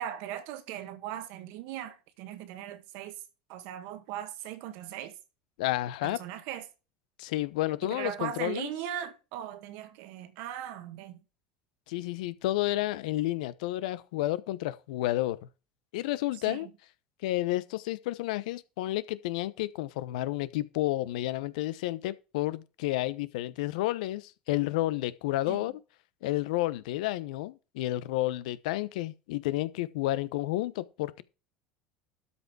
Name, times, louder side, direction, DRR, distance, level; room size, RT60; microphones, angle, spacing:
voice 1, 0.0-3.2 3.5-5.2 6.0-6.7 7.8-11.2 16.4-16.7 25.5-25.7, right 11 dB, 65° right, 1.8 m, -39 dB
voice 2, 5.6-6.2 7.2-8.7 11.9-15.4 15.9-16.7 17.2-25.7 26.2-31.2, left 16 dB, 70° left, 0.9 m, -31 dB
12.5 x 5.6 x 4.8 m
hypercardioid pair, 75°, 4 cm